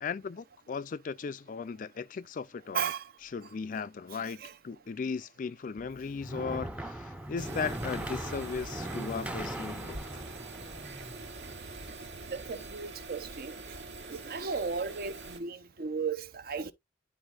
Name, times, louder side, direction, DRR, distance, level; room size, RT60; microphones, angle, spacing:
voice 1, 0.0-2.9 3.3-10.2, left 5 dB, 45° left, 0.4 m, -37 dB
sound 1, 5.8-11.9, right 1 dB, 5° right, 0.5 m, -40 dB
sound 2, 7.4-15.4, right 3 dB, 70° right, 1.3 m, -44 dB
voice 2, 12.3-13.8 14.1-16.7, right 5 dB, 55° right, 0.6 m, -35 dB
10.5 x 4.1 x 2.4 m
head